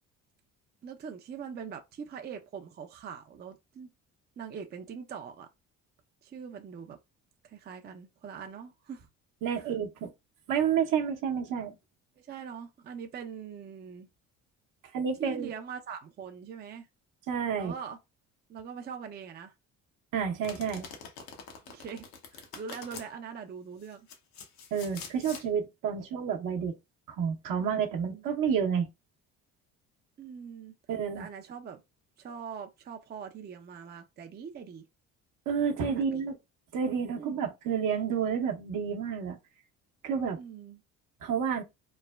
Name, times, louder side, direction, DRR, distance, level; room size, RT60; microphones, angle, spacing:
voice 1, 0.8-3.9 4.4-5.5 6.2-7.0 7.4-9.1 9.6-9.7 12.2-14.1 15.2-16.9 17.6-18.0 18.5-19.5 21.7-22.0 22.3-24.1 27.6-28.2 30.2-30.7 31.1-31.8 32.2-34.8 35.9-36.2 37.2-37.4 40.3-40.8, right 7 dB, 30° right, 0.4 m, -42 dB
voice 2, 9.4-10.1 10.5-11.7 14.9-15.5 17.3-17.7 20.1-20.9 24.7-26.7 27.1-28.9 30.9-31.3 35.5-36.4 36.7-39.4 40.0-40.4 41.2-41.6, right 7 dB, 60° right, 0.8 m, -30 dB
Domestic sounds home sounds, 20.4-23.1 23.8-25.5, left 5 dB, 70° left, 0.8 m, -45 dB
3.1 x 2.0 x 2.2 m
supercardioid pair, 70°, 36 cm